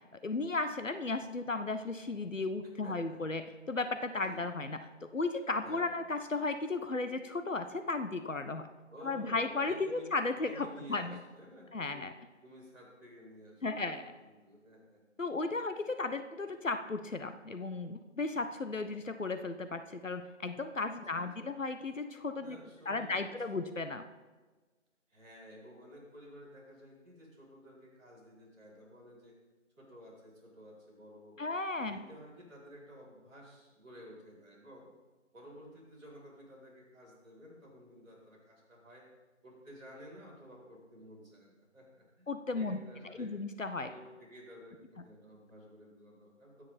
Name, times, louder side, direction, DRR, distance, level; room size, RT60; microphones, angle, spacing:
voice 1, 0.2-4.8 5.1-8.7 9.0-11.2 11.7-12.1 13.6-14.0 15.2-22.6 22.8-24.0 31.4-32.0 42.3-42.8 43.2-43.9, left 3 dB, 75° left, 9 dB, 1.3 m, -35 dB
voice 2, 2.6-3.4 4.2-4.5 5.6-6.0 8.9-10.1 10.4-12.1 12.4-15.0 16.0-16.2 20.9-21.5 22.4-23.6 25.1-29.3 29.8-31.4 31.8-34.9 35.3-39.1 39.4-42.3 42.5-43.3 43.7-46.6, equal, 5° right, -15 dB, 4.9 m, -53 dB
24.5 x 9.7 x 4.3 m, 1.3 s
figure-of-eight pair, 170°, 39 cm